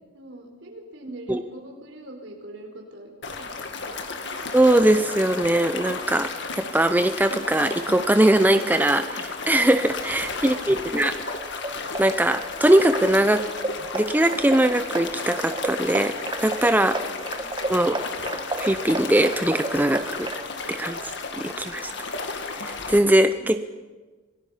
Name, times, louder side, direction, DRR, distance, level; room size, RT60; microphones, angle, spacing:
voice 1, 0.1-4.0 10.3-10.8 17.3-17.6 23.4-23.6, right 1 dB, 70° right, 2 dB, 4.6 m, -43 dB
sound 1, 3.2-23.0, left 4 dB, 65° left, 1.9 m, -33 dB
voice 2, 4.5-6.3 6.6-11.1 12.0-13.4 13.9-16.1 16.4-17.0 17.7-18.0 18.6-20.3 20.7-21.9 22.5-23.6, right 1 dB, 10° right, 9 dB, 0.6 m, -21 dB
sound 2, 11.4-20.5, right 2 dB, 25° right, 1.0 m, -34 dB
26.5 x 18.5 x 5.7 m, 1.3 s
head